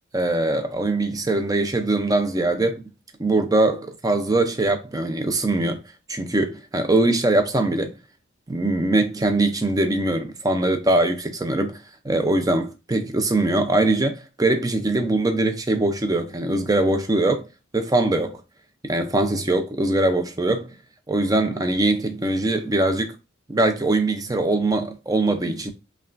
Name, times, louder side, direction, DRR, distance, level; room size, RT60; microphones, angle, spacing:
voice 1, 0.1-2.8 3.2-5.8 6.1-8.0 8.5-17.5 17.7-18.4 18.8-20.7 21.1-23.2 23.5-25.7, right 2 dB, 20° right, 0.5 m, -22 dB
5.3 x 2.3 x 2.5 m
head